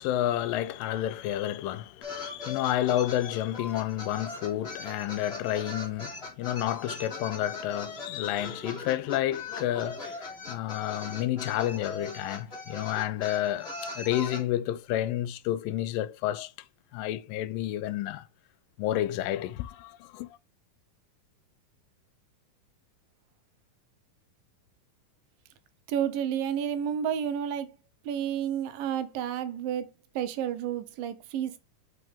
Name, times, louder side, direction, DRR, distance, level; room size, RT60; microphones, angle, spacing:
voice 1, 0.0-16.5 16.9-18.3 18.8-20.3, left 13 dB, 85° left, 2.3 m, -30 dB
sound 1, 2.0-14.4, left 3 dB, 20° left, 2.5 m, -40 dB
voice 2, 25.9-27.7 28.0-31.6, right 9 dB, 85° right, 2.6 m, -31 dB
6.4 x 5.6 x 3.5 m
omnidirectional pair, 3.9 m